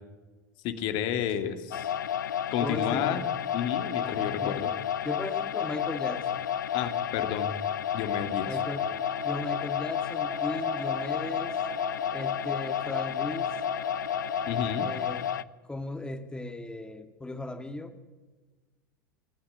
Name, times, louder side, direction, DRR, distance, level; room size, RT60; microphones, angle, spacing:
voice 1, 0.6-1.9 2.5-3.2 3.5-4.7 6.7-7.5 7.9-8.6 14.5-14.9, left 9 dB, 50° left, 8 dB, 2.3 m, -31 dB
sound 1, 1.7-15.4, left 9 dB, 70° left, 0.7 m, -31 dB
voice 2, 2.6-3.3 4.0-4.7 5.0-6.5 8.5-8.9 9.2-11.6 12.1-13.5 14.8-15.3 15.7-17.9, left 2 dB, 10° left, 8 dB, 2.3 m, -37 dB
sound 2, 8.5-15.0, right 3 dB, 15° right, 2.5 m, -41 dB
28.5 x 13.5 x 9.8 m, 1.3 s
figure-of-eight pair, 80°, 10 cm